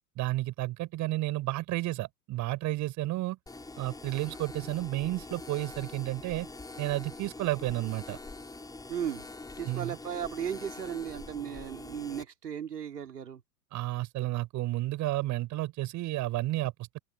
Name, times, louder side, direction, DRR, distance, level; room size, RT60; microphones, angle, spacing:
voice 1, 0.2-3.4 3.8-6.5 6.8-8.2 9.7-10.0 13.7-17.0, right 17 dB, 35° right, 7.2 m, -32 dB
sound 1, 3.5-12.2, left 3 dB, 10° left, 7.0 m, -45 dB
voice 2, 8.9-9.2 9.6-13.4, right 8 dB, 75° right, 3.1 m, -36 dB
open air
figure-of-eight pair, 95°, 48 cm